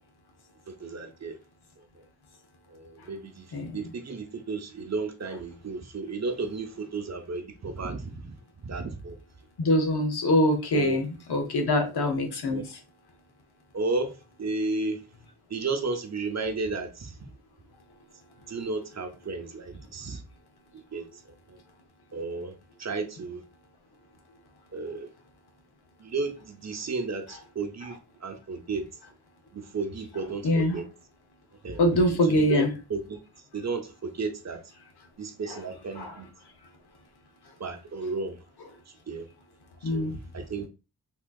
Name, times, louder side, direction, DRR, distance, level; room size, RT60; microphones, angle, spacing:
voice 1, 0.8-1.4 1.8-1.9 2.7-3.5 3.7-8.3 8.6-9.2 10.7-11.0 12.5-12.6 13.7-15.0 15.5-17.1 18.5-20.2 20.9-21.1 21.5-21.6 22.1-22.5 22.8-23.4 24.7-25.1 26.0-28.8 29.5-30.9 31.6-31.8 32.3-33.2 33.5-34.6 35.2-36.3 37.6-38.4 39.1-39.3 39.8-40.7, right 3 dB, 45° right, 0.7 m, -33 dB
voice 2, 9.6-12.6 30.4-30.8 31.8-32.7 35.5-35.6 36.0-36.1 39.8-40.1, left 1 dB, 90° left, 0.8 m, -24 dB
3.6 x 2.8 x 2.2 m
cardioid pair, 50°, 38 cm